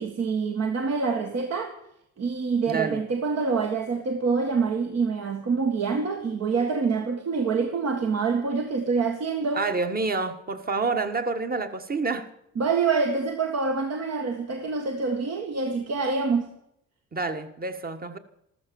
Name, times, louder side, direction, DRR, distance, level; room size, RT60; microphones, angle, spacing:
voice 1, 0.0-1.7 2.2-9.6 12.6-16.5, right 4 dB, 55° right, 1.9 m, -26 dB
voice 2, 2.7-3.0 9.5-12.3 17.1-18.2, right 4 dB, 30° right, 1.7 m, -28 dB
14.0 x 13.5 x 7.2 m
cardioid pair, 95°, 31 cm